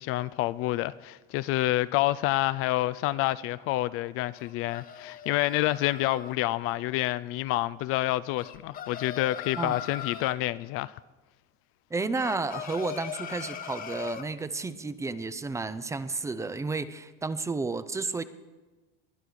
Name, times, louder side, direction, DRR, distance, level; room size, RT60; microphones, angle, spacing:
voice 1, 0.0-11.0, left 16 dB, 45° left, 0.5 m, -28 dB
sound 1, 4.3-6.3 8.4-10.4 12.1-14.3, left 8 dB, 30° left, 1.1 m, -40 dB
voice 2, 11.9-18.2, right 3 dB, 10° right, 0.5 m, -32 dB
21.0 x 10.5 x 6.4 m
cardioid pair, 150°, 30 cm